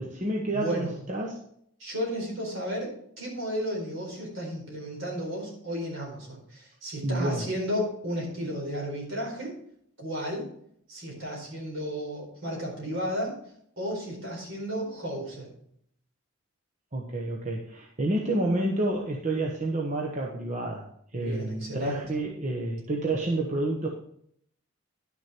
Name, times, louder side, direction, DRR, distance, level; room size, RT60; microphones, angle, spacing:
voice 1, 0.0-1.4 7.0-7.4 16.9-20.9 21.1-23.9, right 2 dB, 35° right, -1 dB, 1.1 m, -29 dB
voice 2, 0.5-1.0 1.8-9.6 10.0-10.5 10.9-13.4 13.8-15.5 21.1-22.0, equal, 65° right, -1 dB, 4.4 m, -33 dB
11.0 x 6.4 x 4.4 m, 0.68 s
head